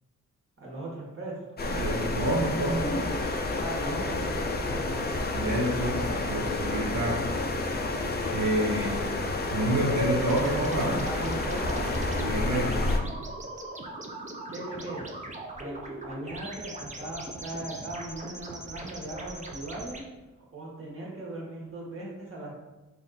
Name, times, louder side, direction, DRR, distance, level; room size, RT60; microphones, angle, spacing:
voice 1, 0.6-1.4 1.7-2.4 2.7-3.2 3.6-5.0 11.0-11.9 14.5-15.1 15.5-20.0 20.5-22.5, right 1 dB, 45° right, -4 dB, 1.4 m, -38 dB
sound 1, 1.6-13.0, left 2 dB, 35° left, 0.5 m, -30 dB
voice 2, 1.8-2.9 4.9-5.0 5.3-7.3 8.3-9.2 9.5-11.1 12.2-12.8, right 1 dB, 80° right, -3 dB, 0.7 m, -28 dB
sound 2, 10.1-20.0, right 2 dB, 25° right, 0.6 m, -40 dB
3.8 x 2.5 x 4.1 m, 1.1 s
wide cardioid pair, 95°, 30 cm